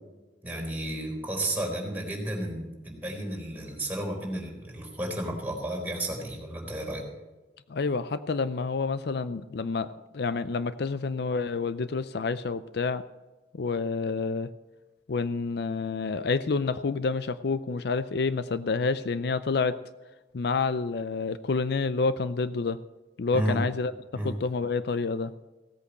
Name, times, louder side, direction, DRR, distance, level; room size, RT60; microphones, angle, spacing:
voice 1, 0.4-7.0 23.3-23.6 24.1-24.3, right 1 dB, 10° right, -2 dB, 4.0 m, -32 dB
voice 2, 7.7-13.0 13.5-14.5 15.1-19.8 20.3-22.8 23.2-25.3, left 4 dB, 65° left, 13 dB, 0.5 m, -28 dB
16.5 x 8.4 x 6.5 m, 1.2 s
head